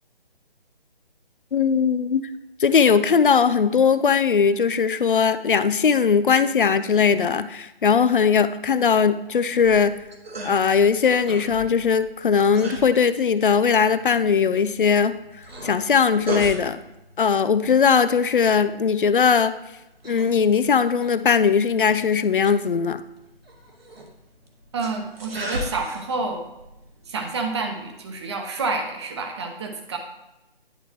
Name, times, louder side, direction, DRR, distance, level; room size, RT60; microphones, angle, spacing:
voice 1, 1.5-2.2 2.6-10.0 10.4-15.1 15.6-16.8 17.2-19.5 20.0-23.0, left 6 dB, 55° left, 13 dB, 0.5 m, -19 dB
sound 1, 9.5-28.2, right 1 dB, 75° right, 1.5 m, -39 dB
voice 2, 24.7-26.4 27.1-30.0, right 3 dB, 25° right, 4 dB, 0.9 m, -28 dB
10.5 x 5.0 x 3.0 m, 0.94 s
figure-of-eight pair, 150°, 31 cm